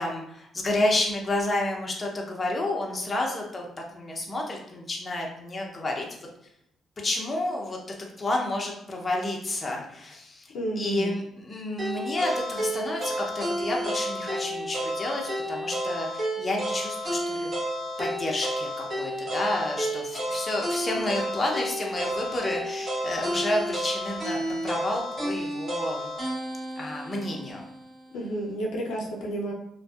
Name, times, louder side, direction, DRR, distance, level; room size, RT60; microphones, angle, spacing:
voice 1, 0.0-6.1 7.0-7.8 8.2-17.5 18.0-26.1 26.8-27.7, left 1 dB, 30° left, -1 dB, 0.6 m, -30 dB
voice 2, 10.5-11.1 28.1-29.5, right 1 dB, 85° left, -2 dB, 0.5 m, -31 dB
sound 1, 11.8-27.9, equal, 40° right, 1.1 m, -31 dB
2.5 x 2.2 x 2.3 m, 0.80 s
cardioid pair, 90°, 0 cm